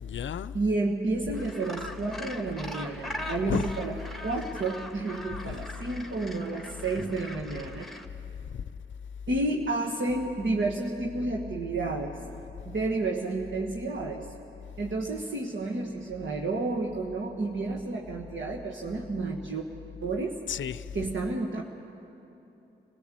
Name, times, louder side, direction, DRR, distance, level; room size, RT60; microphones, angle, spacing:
voice 1, 0.0-0.6 3.4-3.8 5.3-5.6 8.5-8.6 20.5-20.9, left 8 dB, 65° left, 0.5 m, -33 dB
voice 2, 0.5-4.0 4.2-7.9 9.3-12.2 12.6-14.3 14.8-19.6 20.0-20.4 20.9-21.6, right 2 dB, 65° right, 1.7 m, -31 dB
Gull seagull, 1.3-8.0, left 1 dB, ahead, 1.8 m, -41 dB
26.5 x 16.5 x 7.7 m
cardioid pair, 50°, 21 cm